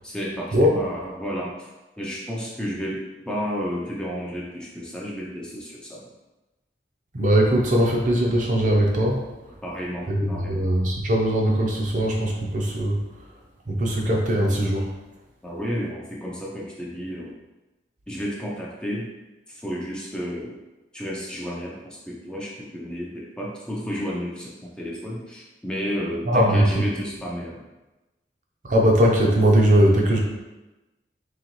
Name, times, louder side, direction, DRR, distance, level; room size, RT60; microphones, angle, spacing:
voice 1, 0.0-1.7 2.0-6.1 9.6-10.7 15.4-17.4 18.1-19.1 19.5-20.6 20.9-27.6, equal, 5° left, -4 dB, 0.5 m, -32 dB
voice 2, 7.1-9.3 10.1-13.0 13.7-14.9 26.3-26.8 28.6-30.2, equal, 45° right, -1 dB, 0.6 m, -20 dB
3.9 x 3.0 x 3.0 m, 1.1 s
head